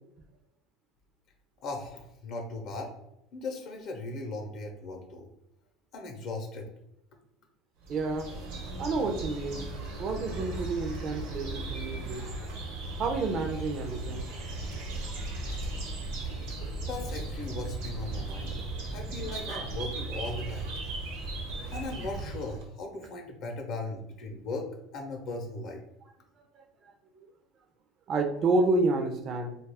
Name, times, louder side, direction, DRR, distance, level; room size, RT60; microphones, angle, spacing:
voice 1, 1.6-2.9 3.3-5.3 5.9-6.7 16.9-18.6 18.9-20.8 21.7-25.8, left 2 dB, 55° left, 2 dB, 0.6 m, -38 dB
sound 1, 7.8-22.7, right 2 dB, 75° right, 0.9 m, -37 dB
voice 2, 7.9-8.3 8.8-9.7 10.0-12.3 13.0-14.3 15.2-15.4 26.6-26.9 28.1-29.5, right 3 dB, 45° right, 5 dB, 0.4 m, -29 dB
2.3 x 2.3 x 3.4 m, 0.84 s
supercardioid pair, 110°, 0 cm